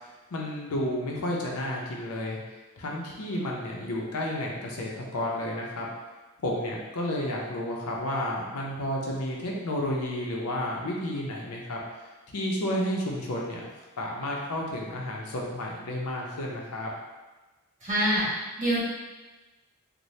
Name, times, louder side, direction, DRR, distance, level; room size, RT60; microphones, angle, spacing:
voice 1, 0.3-2.4 2.8-5.9 6.4-11.8 12.3-13.6 14.0-16.9, left 1 dB, 90° left, -2 dB, 0.6 m, -31 dB
voice 2, 17.8-18.3 18.6-18.8, right 1 dB, 35° right, -9 dB, 1.1 m, -24 dB
2.7 x 2.1 x 3.1 m, 1.2 s
head